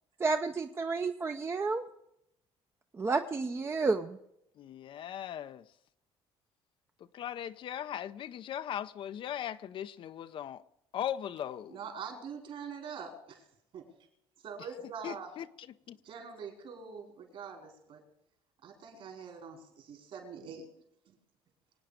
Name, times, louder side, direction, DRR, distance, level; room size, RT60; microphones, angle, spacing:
voice 1, 0.2-1.8 3.0-4.2, right 4 dB, 25° right, 0.7 m, -31 dB
voice 2, 4.6-5.6 7.1-10.6 10.9-11.8 15.0-16.0, left 10 dB, 55° left, 0.6 m, -39 dB
voice 3, 11.7-13.4 13.7-13.9 14.4-15.4 16.0-18.0 18.6-20.6 21.1-21.2, right 5 dB, 60° right, 4.8 m, -44 dB
24.0 x 9.3 x 5.1 m
cardioid pair, 120°, 11 cm